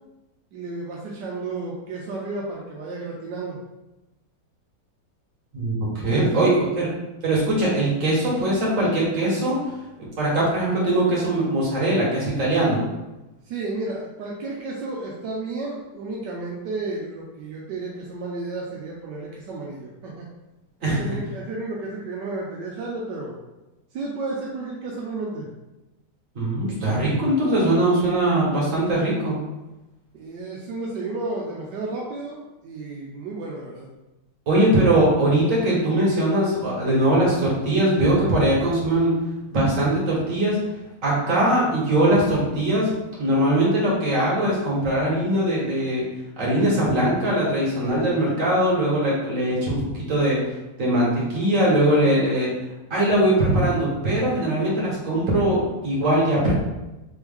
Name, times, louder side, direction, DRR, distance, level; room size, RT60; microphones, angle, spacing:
voice 1, 0.5-3.6 6.1-6.6 13.4-20.3 20.9-23.4 23.9-25.5 30.1-33.9, right 3 dB, 80° right, -3 dB, 1.3 m, -32 dB
voice 2, 5.5-6.9 7.2-9.6 10.2-12.8 20.8-21.2 26.4-29.4 34.5-39.1 39.5-40.6 41.0-42.9 43.2-46.0 46.4-50.4 50.8-52.5 52.9-56.5, right 1 dB, 50° right, -5 dB, 1.8 m, -21 dB
4.3 x 3.2 x 3.5 m, 1.0 s
omnidirectional pair, 1.9 m